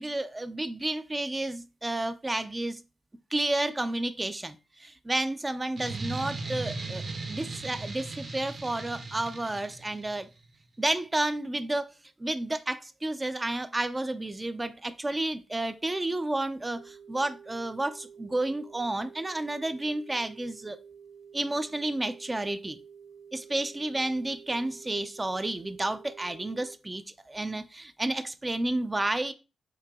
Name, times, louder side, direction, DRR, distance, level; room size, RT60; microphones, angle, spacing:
voice 1, 0.0-2.8 3.3-7.0 7.3-10.3 10.8-11.9 12.2-20.8 21.3-22.8 23.3-29.3, right 2 dB, 20° right, 0.4 m, -31 dB
sound 1, 5.8-10.2, right 3 dB, 50° right, 0.9 m, -37 dB
sound 2, 16.8-26.8, right 7 dB, 90° right, 0.4 m, -50 dB
4.7 x 2.8 x 3.5 m
cardioid pair, 85°, 0 cm